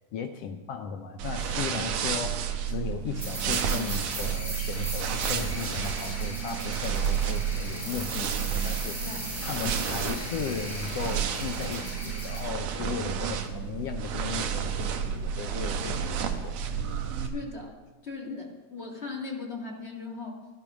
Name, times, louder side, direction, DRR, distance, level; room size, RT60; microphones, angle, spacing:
voice 1, 0.1-9.1 9.4-16.6, left 7 dB, 75° left, 6 dB, 1.5 m, -36 dB
sound 1, 1.2-17.3, right 7 dB, 70° right, 2.1 m, -31 dB
sound 2, 3.2-12.4, equal, 5° right, 5.0 m, -38 dB
voice 2, 17.2-17.7 18.0-20.6, left 4 dB, 25° left, -1 dB, 1.8 m, -38 dB
13.0 x 12.0 x 6.1 m, 1.2 s
omnidirectional pair, 3.5 m